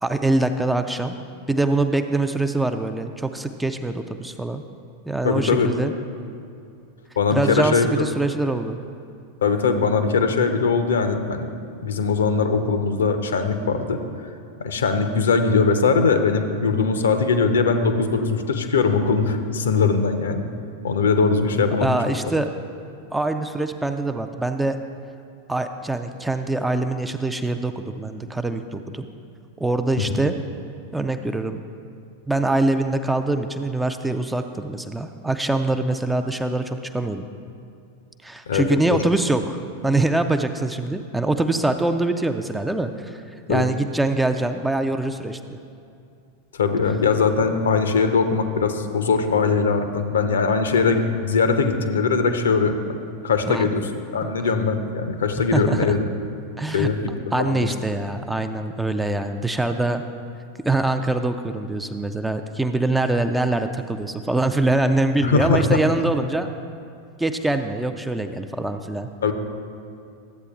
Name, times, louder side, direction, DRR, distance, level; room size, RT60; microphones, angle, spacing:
voice 1, 0.0-1.2 1.5-4.6 5.1-5.9 7.3-8.8 21.8-22.5 23.1-24.8 25.5-29.1 29.6-30.3 30.9-31.6 32.3-37.3 38.2-43.2 43.5-45.6 53.5-53.7 55.5-56.0 56.6-56.9 57.3-60.0 60.6-66.5 67.2-69.1, right 2 dB, 5° right, 7 dB, 0.4 m, -24 dB
voice 2, 5.2-5.7 7.2-8.0 9.4-11.5 11.8-14.0 14.6-20.4 20.8-21.9 38.5-38.6 43.5-43.6 46.6-52.8 53.2-56.0 56.7-57.0 57.4-57.7 65.2-65.8 69.2-69.3, left 4 dB, 65° left, 8 dB, 0.6 m, -21 dB
13.0 x 8.1 x 2.4 m, 2.5 s
figure-of-eight pair, 90°, 0 cm